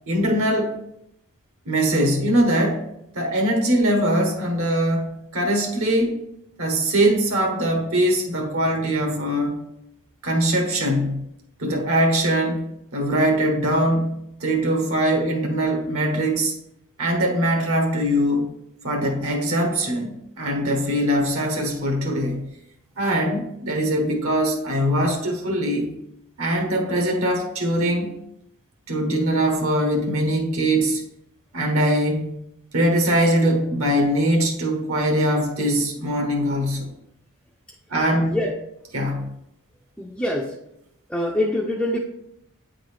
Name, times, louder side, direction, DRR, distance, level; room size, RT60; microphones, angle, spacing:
voice 1, 0.1-0.7 1.7-2.8 3.1-6.2 6.6-9.6 10.2-11.3 11.6-12.7 12.9-14.1 14.4-16.5 17.0-18.5 18.8-22.5 23.0-25.9 26.4-28.1 28.9-31.0 31.5-32.3 32.7-36.9 37.9-38.3 38.9-39.4, right 1 dB, 70° right, 3 dB, 1.1 m, -22 dB
voice 2, 38.2-38.5 40.0-40.6 41.1-42.0, left 1 dB, 5° left, -3 dB, 0.4 m, -24 dB
8.7 x 3.8 x 3.3 m, 0.79 s
head